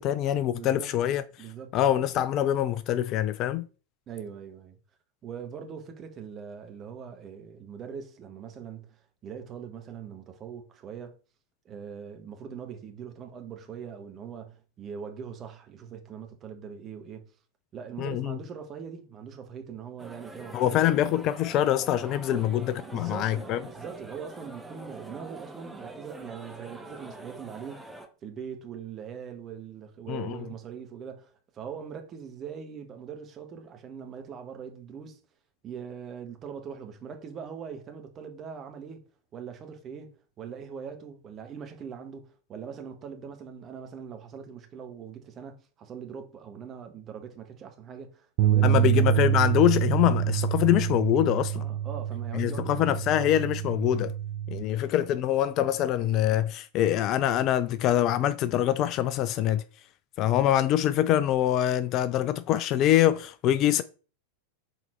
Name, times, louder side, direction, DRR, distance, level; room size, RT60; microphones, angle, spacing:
voice 1, 0.0-1.2 1.7-3.7 18.0-18.4 20.5-23.6 30.1-30.4 48.6-51.6 52.3-54.1 54.5-59.6 60.2-63.8, left 12 dB, 35° left, 0.4 m, -24 dB
voice 2, 0.5-0.9 1.4-1.7 4.1-4.8 5.2-11.2 11.6-17.3 17.7-20.8 22.3-22.5 22.8-27.9 28.2-35.2 35.6-48.9 51.5-52.7 54.6-54.8, right 7 dB, 30° right, 1.3 m, -41 dB
sound 1, 20.0-28.1, right 2 dB, 5° right, 1.1 m, -45 dB
sound 2, 48.4-54.6, right 11 dB, 45° right, 0.5 m, -26 dB
6.5 x 4.0 x 4.4 m
figure-of-eight pair, 90°, 0 cm